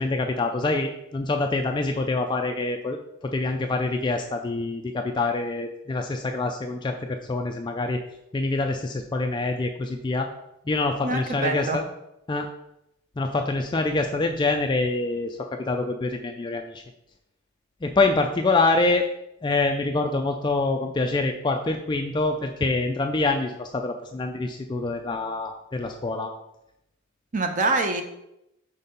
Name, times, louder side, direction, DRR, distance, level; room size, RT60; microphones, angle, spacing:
voice 1, 0.0-3.0 3.2-8.0 8.3-10.3 10.7-11.8 12.3-12.5 13.2-16.8 17.8-19.0 19.4-26.3, left 3 dB, 20° left, 4 dB, 0.3 m, -25 dB
voice 2, 11.0-11.8 27.3-28.0, right 2 dB, 35° right, 6 dB, 0.7 m, -25 dB
5.4 x 4.1 x 5.2 m, 0.84 s
head